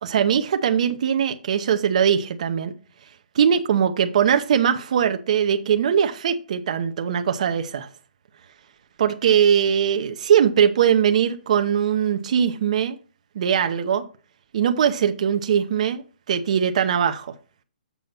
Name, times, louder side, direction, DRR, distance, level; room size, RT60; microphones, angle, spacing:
voice 1, 0.0-2.7 3.3-7.9 9.0-13.0 13.3-14.0 14.5-17.3, right 8 dB, 45° right, 0.7 m, -21 dB
7.0 x 5.3 x 5.8 m
hypercardioid pair, 170°, 5 cm